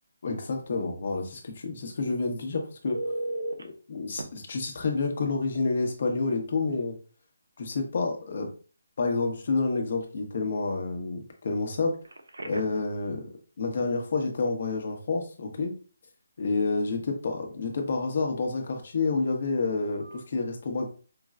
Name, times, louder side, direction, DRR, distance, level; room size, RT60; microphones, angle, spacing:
voice 1, 0.2-3.0 3.6-6.9 7.6-8.5 9.0-12.0 12.4-13.3 13.6-15.8 16.4-20.9, left 3 dB, 55° left, 3 dB, 1.2 m, -29 dB
Telephone, 2.9-3.6 4.2-4.3 6.0-6.2 6.6-6.8 12.0-12.9 20.0-20.2, right 1 dB, 90° right, 0.7 m, -35 dB
5.2 x 3.1 x 2.5 m, 0.37 s
figure-of-eight pair, 155°, 0 cm